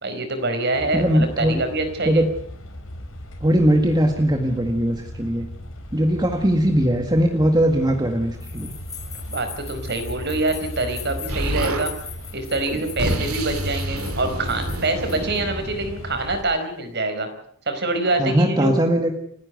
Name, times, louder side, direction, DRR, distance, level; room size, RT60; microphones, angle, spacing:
voice 1, 0.0-2.2 9.3-11.9 12.3-17.3 17.7-18.8, right 2 dB, 50° right, 7 dB, 4.7 m, -25 dB
sound 1, 0.7-16.4, equal, 70° left, 5.5 m, -37 dB
voice 2, 0.9-1.6 2.0-2.3 3.4-5.5 5.9-8.7 18.2-19.1, equal, 20° right, 4 dB, 1.8 m, -20 dB
sound 2, 8.4-15.4, left 6 dB, 15° left, 7.2 m, -40 dB
Explosion, 11.3-11.9 12.6-16.5, right 1 dB, 90° right, 2.9 m, -28 dB
29.0 x 10.5 x 9.4 m, 0.67 s
head